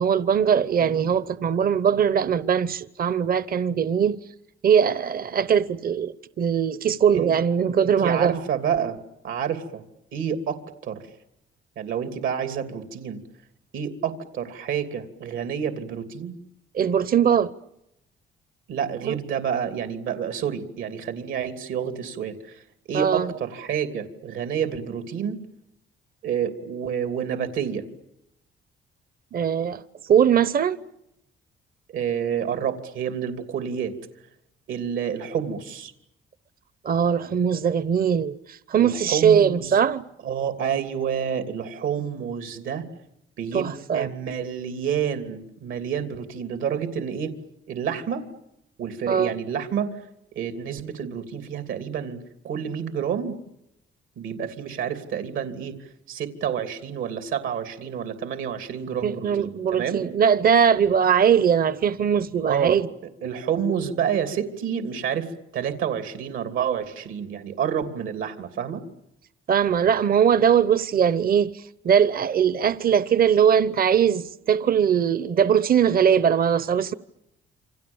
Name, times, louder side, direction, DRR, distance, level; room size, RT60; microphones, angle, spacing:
voice 1, 0.0-4.2 4.6-8.4 16.7-17.5 19.1-19.2 22.9-23.3 29.3-30.8 36.8-40.1 43.5-44.1 49.1-49.3 59.0-62.9 69.5-76.9, right 8 dB, 50° right, 1.0 m, -21 dB
voice 2, 0.8-1.1 7.1-7.3 7.8-9.0 9.2-9.8 10.1-11.0 11.8-13.2 13.7-16.3 18.7-22.6 22.9-25.4 26.2-27.8 31.9-33.9 34.7-35.9 38.7-39.8 40.2-42.8 43.4-47.3 47.7-48.2 48.8-49.9 50.3-52.2 52.4-53.4 54.2-55.8 56.1-60.0 62.4-62.8 63.2-68.8, right 8 dB, 80° right, 3.0 m, -29 dB
28.5 x 26.0 x 7.2 m
cardioid pair, 90°, 20 cm